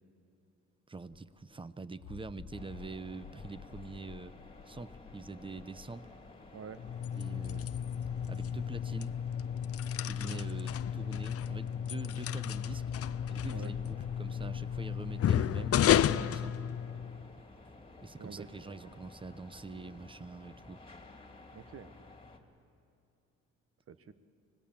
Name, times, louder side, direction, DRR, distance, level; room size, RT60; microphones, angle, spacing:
voice 1, 0.9-4.3 4.7-6.1 7.2-7.7 8.3-9.1 10.0-12.9 13.3-16.6 17.4-17.5 18.0-20.8, right 3 dB, 15° right, 15 dB, 0.8 m, -45 dB
sound 1, 1.1-1.2 2.0-6.5 7.3-12.0 12.7-15.7, left 7 dB, 80° left, 1.7 m, -51 dB
sound 2, 2.5-22.4, left 2 dB, 15° left, 2.5 m, -54 dB
sound 3, 6.8-17.3, left 10 dB, 50° left, 0.6 m, -32 dB
voice 2, 10.3-10.6 13.5-13.7 15.4-15.7 18.2-19.0 21.5-21.9 23.9-24.1, right 6 dB, 50° right, 12 dB, 1.1 m, -48 dB
25.0 x 18.5 x 7.3 m, 2.7 s
cardioid pair, 90°, 30 cm